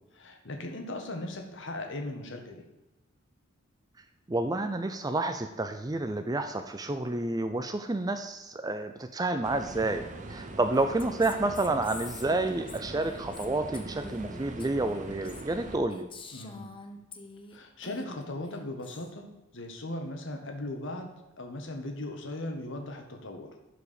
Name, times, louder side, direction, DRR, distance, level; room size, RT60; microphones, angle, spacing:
voice 1, 0.1-2.6 16.3-16.7 17.5-19.2 19.5-21.1 21.4-23.5, left 1 dB, 60° left, 4 dB, 1.5 m, -38 dB
voice 2, 4.3-16.1, right 2 dB, 20° right, 8 dB, 0.5 m, -30 dB
sound 1, 9.4-15.8, right 2 dB, 35° right, 1.0 m, -42 dB
Female speech woman speaking, 10.7-17.6 17.8-19.1, left 3 dB, 25° left, 0.9 m, -47 dB
11.0 x 4.9 x 6.9 m, 1.0 s
head